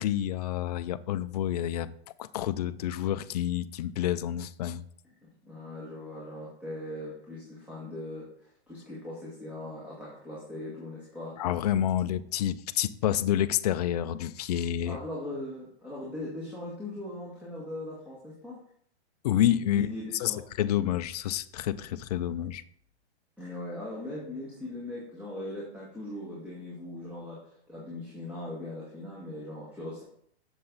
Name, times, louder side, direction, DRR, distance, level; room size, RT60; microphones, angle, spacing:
voice 1, 0.0-1.9 2.2-4.8 11.4-15.0 19.2-19.9 20.1-22.6, left 11 dB, 40° left, 0.4 m, -28 dB
voice 2, 5.4-11.4 14.9-18.6 19.7-20.4 23.4-30.0, left 1 dB, 5° right, 1.7 m, -40 dB
7.5 x 6.9 x 4.0 m
hypercardioid pair, 145°, 34 cm